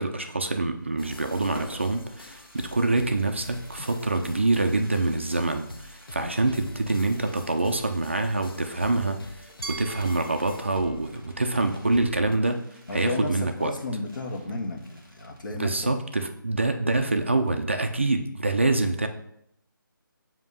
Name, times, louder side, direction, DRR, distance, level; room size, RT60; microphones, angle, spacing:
voice 1, 0.0-12.6 12.9-13.7 15.6-19.1, right 2 dB, 35° right, 6 dB, 0.4 m, -26 dB
Fireworks, 0.7-15.9 16.2-16.3 16.5-16.8, right 1 dB, ahead, 1.2 m, -52 dB
sound 1, 1.0-12.4, left 2 dB, 85° left, 0.7 m, -45 dB
Glass, 9.6-12.5, right 4 dB, 90° right, 0.5 m, -43 dB
voice 2, 12.9-15.8, left 2 dB, 60° left, 2 dB, 1.3 m, -33 dB
7.3 x 2.8 x 5.4 m, 0.74 s
figure-of-eight pair, 175°, 12 cm